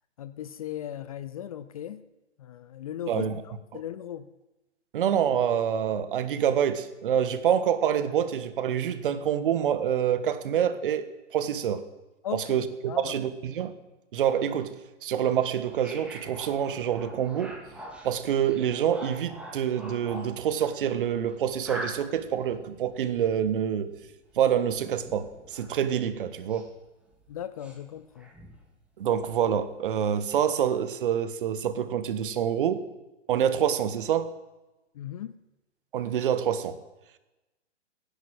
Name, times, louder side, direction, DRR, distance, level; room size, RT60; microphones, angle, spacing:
voice 1, 0.2-2.0 2.4-3.3 3.7-4.3 12.2-13.2 27.3-28.3 34.9-35.4, left 10 dB, 30° left, 14 dB, 0.5 m, -37 dB
voice 2, 3.1-3.4 3.7-3.8 4.9-11.0 11.3-11.8 12.3-13.7 14.1-14.8 15.0-17.5 18.0-23.9 24.3-26.7 29.0-32.8 33.3-34.3 35.9-36.8, right 9 dB, 45° right, 12 dB, 1.4 m, -26 dB
sound 1, 15.3-26.8 27.1-28.6 29.2-29.7, right 1 dB, 5° right, 2.5 m, -45 dB
16.0 x 10.5 x 7.7 m, 1.0 s
figure-of-eight pair, 125°, 36 cm